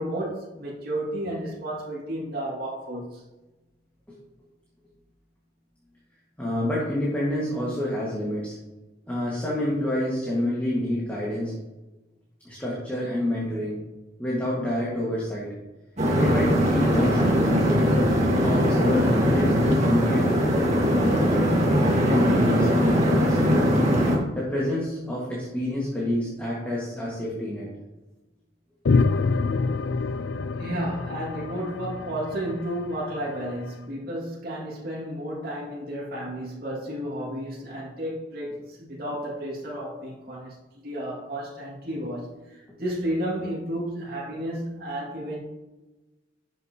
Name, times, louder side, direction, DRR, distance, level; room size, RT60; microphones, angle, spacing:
voice 1, 0.0-3.2 30.6-45.4, right 1 dB, 55° right, 2.4 m, -32 dB
voice 2, 6.4-8.6 9.1-11.5 12.4-13.8 14.2-15.5 16.1-17.9 18.4-20.6 21.0-21.4 21.9-23.9 24.3-27.7, left 1 dB, 10° left, 1.8 m, -28 dB
sound 1, 16.0-24.2, equal, 40° right, 1.9 m, -21 dB
sound 2, 28.8-33.5, left 4 dB, 75° left, 0.4 m, -26 dB
12.0 x 6.8 x 3.0 m
head